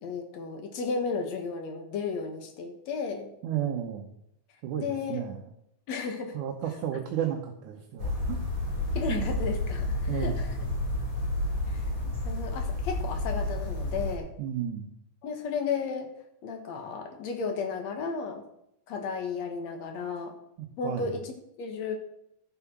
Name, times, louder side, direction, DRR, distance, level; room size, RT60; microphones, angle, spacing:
voice 1, 0.0-3.3 4.8-5.2 5.9-6.4 8.9-10.5 11.7-14.3 15.2-16.1 16.4-18.4 18.9-20.3 20.8-22.0, left 5 dB, 65° left, 5 dB, 2.6 m, -34 dB
voice 2, 3.4-4.1 4.6-5.4 6.3-8.7 9.1-9.3 10.1-10.4 14.4-14.9 20.6-21.1, right 9 dB, 75° right, 3 dB, 2.4 m, -33 dB
sound 1, 8.0-14.2, left 2 dB, 30° left, 2.7 m, -30 dB
11.0 x 7.6 x 5.9 m, 0.78 s
omnidirectional pair, 3.5 m